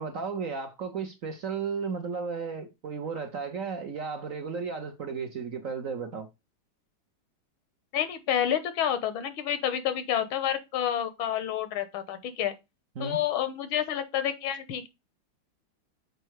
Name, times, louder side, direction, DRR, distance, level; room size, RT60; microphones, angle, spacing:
voice 1, 0.0-6.3 13.0-13.2, right 5 dB, 60° right, 0.9 m, -34 dB
voice 2, 7.9-12.5 13.0-14.9, left 10 dB, 85° left, 1.8 m, -29 dB
6.7 x 4.4 x 4.7 m
omnidirectional pair, 2.2 m